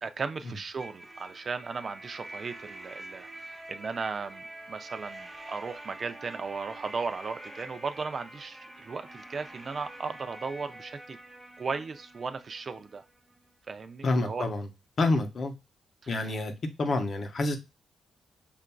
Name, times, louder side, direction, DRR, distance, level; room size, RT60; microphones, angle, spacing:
voice 1, 0.0-11.2 11.6-13.0 13.7-14.5 15.1-15.2 16.1-16.3 16.8-17.0, right 4 dB, 45° right, 0.4 m, -36 dB
sound 1, 0.8-13.5, right 2 dB, 15° right, 0.8 m, -46 dB
voice 2, 14.0-14.7 15.0-15.5 16.1-16.5 16.8-17.6, left 2 dB, 50° left, 0.8 m, -27 dB
5.6 x 2.5 x 2.2 m
cardioid pair, 80°, 0 cm